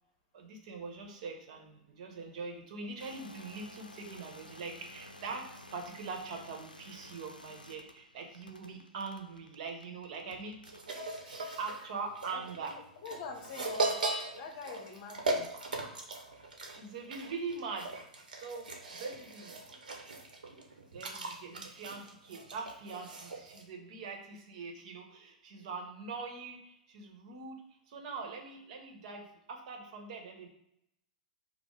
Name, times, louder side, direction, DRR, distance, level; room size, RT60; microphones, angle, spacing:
voice 1, 0.3-10.8 11.6-12.8 16.8-18.0 18.3-19.6 20.9-27.6 27.9-30.5, right 4 dB, 50° right, 2 dB, 1.0 m, -42 dB
sound 1, 3.0-11.1, left 1 dB, 90° left, 0.4 m, -53 dB
sound 2, 10.6-23.6, right 2 dB, 75° right, 0.8 m, -38 dB
voice 2, 11.2-11.6 12.3-12.4 13.0-14.0 14.4-15.5, left 5 dB, 45° left, 4 dB, 0.8 m, -45 dB
5.2 x 2.0 x 4.8 m, 0.76 s
figure-of-eight pair, 100°, 5 cm